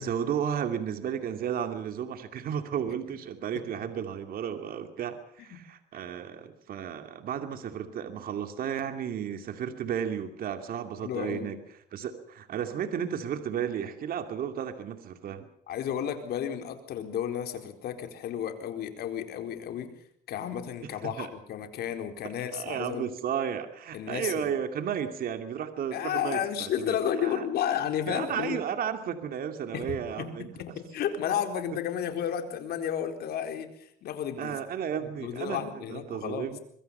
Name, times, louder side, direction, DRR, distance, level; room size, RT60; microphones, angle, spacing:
voice 1, 0.0-11.6 11.9-15.5 20.8-21.3 22.5-27.5 28.1-30.5 34.4-36.6, right 8 dB, 60° right, 7 dB, 2.5 m, -33 dB
voice 2, 11.0-11.4 15.7-19.9 20.3-23.0 23.9-24.5 25.9-28.6 29.7-34.6 35.0-36.5, left 9 dB, 70° left, 6 dB, 4.3 m, -32 dB
25.0 x 23.0 x 5.7 m, 0.67 s
cardioid pair, 110°, 17 cm